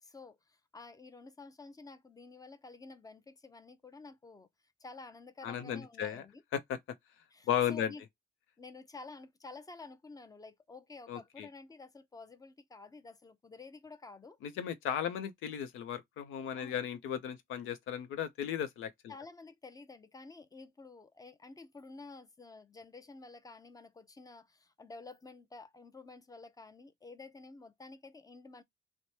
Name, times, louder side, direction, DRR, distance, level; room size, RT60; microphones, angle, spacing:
voice 1, 0.0-4.5 4.8-6.4 7.3-8.0 8.6-14.4 16.5-16.8 19.1-28.6, left 3 dB, 20° left, 0.6 m, -51 dB
voice 2, 5.4-6.3 6.5-6.8 7.5-7.9 11.1-11.5 14.4-19.1, left 9 dB, 90° left, 0.6 m, -35 dB
3.1 x 2.1 x 4.0 m
cardioid pair, 90°, 20 cm